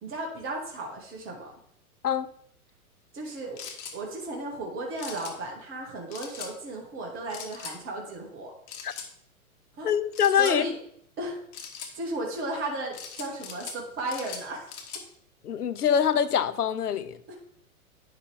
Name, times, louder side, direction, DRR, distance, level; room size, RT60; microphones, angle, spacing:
voice 1, 0.0-1.5 3.1-3.6 3.9-8.5 9.7-9.9 10.4-10.8 11.2-11.4 12.0-14.7 17.3-17.4, right 2 dB, 30° right, 2.0 m, -35 dB
sound 1, 3.6-4.0 5.0-5.3 6.1-6.5 7.3-7.8 8.7-9.1 10.1-10.6 11.5-11.9 12.9-13.8 14.1-15.0, left 6 dB, 45° left, 1.6 m, -40 dB
voice 2, 9.8-10.7 15.4-17.2, left 8 dB, 85° left, 0.7 m, -24 dB
9.6 x 5.7 x 3.5 m
hypercardioid pair, 110°, 44 cm